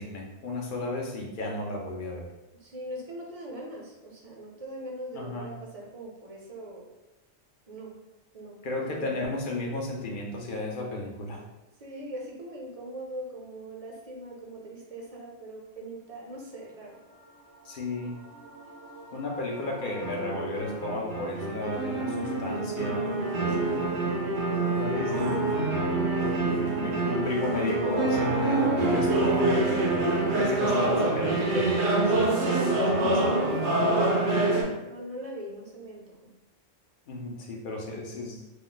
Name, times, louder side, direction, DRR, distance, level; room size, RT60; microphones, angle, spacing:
voice 1, 0.0-2.3 5.1-5.5 8.6-11.4 17.6-18.1 19.1-23.0 24.7-25.6 26.0-32.3 32.9-33.3 37.1-38.4, left 2 dB, 55° left, 0 dB, 0.7 m, -34 dB
voice 2, 2.6-6.9 7.7-8.0 8.3-9.1 11.8-17.0 23.4-25.2 33.2-34.2 34.8-36.3, right 1 dB, 40° right, -1 dB, 0.6 m, -41 dB
sound 1, 18.4-34.6, right 2 dB, 75° right, 1.0 m, -26 dB
3.0 x 2.1 x 3.8 m, 1.0 s
omnidirectional pair, 1.2 m